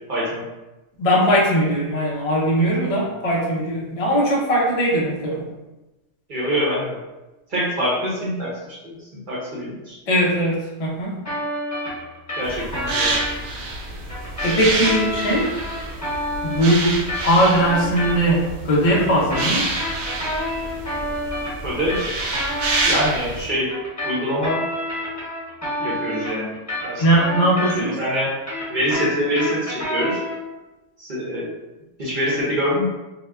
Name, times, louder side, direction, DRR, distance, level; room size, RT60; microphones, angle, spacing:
voice 1, 0.1-0.5 6.3-7.0 7.5-10.0 12.3-13.2 21.6-22.0 22.8-23.7 24.0-24.6 25.8-26.5 26.8-27.0 27.8-28.4 28.7-30.2 31.0-31.5 32.0-32.9, equal, 45° right, -6 dB, 0.8 m, -24 dB
voice 2, 1.0-5.5 10.1-11.2 14.4-15.5 16.4-19.7 27.0-28.0, equal, 65° left, -3 dB, 0.3 m, -20 dB
sound 1, 11.2-13.3 14.1-18.4 18.7-22.9 23.7-28.0 28.3-30.4, left 1 dB, 15° left, 0.9 m, -28 dB
sound 2, 12.4-23.5, right 2 dB, 80° right, 1.0 m, -28 dB
2.8 x 2.1 x 3.4 m, 1.1 s
omnidirectional pair, 1.4 m